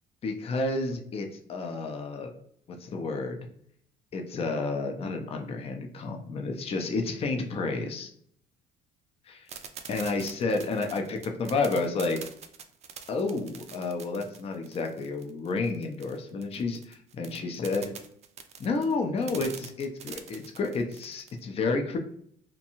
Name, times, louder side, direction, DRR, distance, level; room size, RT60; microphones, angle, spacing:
voice 1, 0.2-2.3 2.8-3.4 4.1-8.1 9.3-9.5 9.9-12.2 13.1-17.9 18.6-22.0, left 3 dB, 35° left, 4 dB, 0.5 m, -30 dB
sound 1, 9.5-21.4, right 7 dB, 40° right, 0.4 m, -44 dB
2.6 x 2.2 x 2.8 m, 0.66 s
cardioid pair, 110°, 17 cm